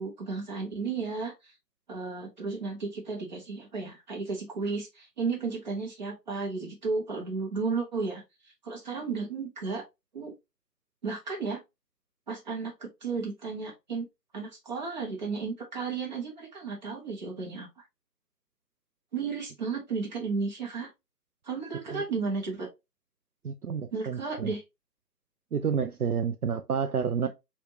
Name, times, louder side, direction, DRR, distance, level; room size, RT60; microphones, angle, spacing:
voice 1, 0.0-1.5 1.9-8.2 8.6-9.8 10.1-10.3 11.0-11.6 12.3-14.1 14.3-17.7 19.1-20.9 21.4-22.7 23.9-24.6, right 4 dB, 25° right, 1.3 m, -33 dB
voice 2, 23.4-24.5 25.5-27.3, right 7 dB, 65° right, 0.5 m, -30 dB
5.2 x 2.8 x 3.0 m
figure-of-eight pair, 145°, 50 cm